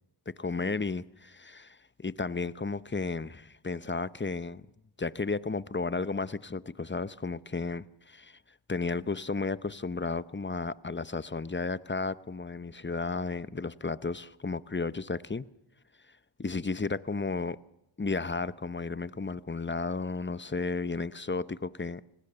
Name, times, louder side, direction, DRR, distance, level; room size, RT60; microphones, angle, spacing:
voice 1, 0.3-4.7 5.0-8.4 8.7-15.5 16.4-17.6 18.0-22.0, left 4 dB, 25° left, 0.8 m, -33 dB
25.5 x 19.0 x 6.9 m
cardioid pair, 45°, 46 cm